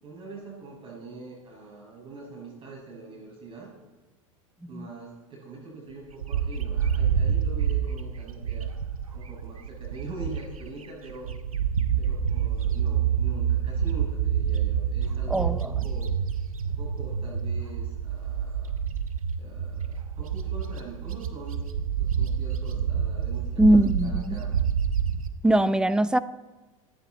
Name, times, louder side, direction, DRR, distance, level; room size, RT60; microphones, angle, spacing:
voice 1, 0.0-3.7 4.7-8.7 9.1-11.3 12.0-16.1 16.7-18.7 19.4-21.7 22.0-24.5, right 3 dB, 30° right, 6.2 m, -43 dB
Bird, 6.2-10.7 11.1-25.3, right 8 dB, 85° right, 1.0 m, -28 dB
voice 2, 15.3-15.7 23.6-24.4 25.4-26.2, right 1 dB, 5° right, 0.7 m, -21 dB
26.0 x 9.9 x 4.1 m
hypercardioid pair, 90°, 18 cm